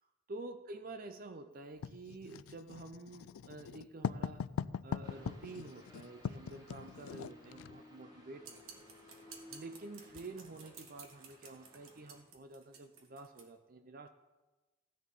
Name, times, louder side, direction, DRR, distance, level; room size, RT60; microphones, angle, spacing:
voice 1, 0.3-4.5 4.8-8.8 9.5-14.1, right 2 dB, 45° right, 9 dB, 0.5 m, -49 dB
Writing, 1.8-7.8, left 7 dB, 90° left, 0.3 m, -41 dB
sound 1, 5.0-12.2, left 1 dB, 20° right, 1.8 m, -57 dB
sound 2, 8.4-13.5, right 6 dB, 85° right, 1.6 m, -55 dB
16.0 x 10.0 x 4.0 m, 1.2 s
head